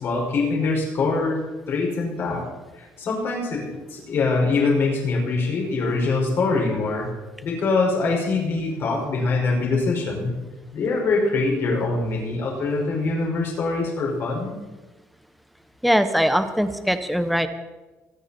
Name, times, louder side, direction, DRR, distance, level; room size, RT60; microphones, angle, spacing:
voice 1, 0.0-1.4 1.7-2.4 2.7-7.1 7.4-10.3 10.7-14.5, left 3 dB, 50° left, -1 dB, 5.5 m, -23 dB
voice 2, 15.8-17.5, equal, ahead, 9 dB, 0.9 m, -21 dB
24.0 x 9.8 x 4.4 m, 1.1 s
cardioid pair, 150°, 5 cm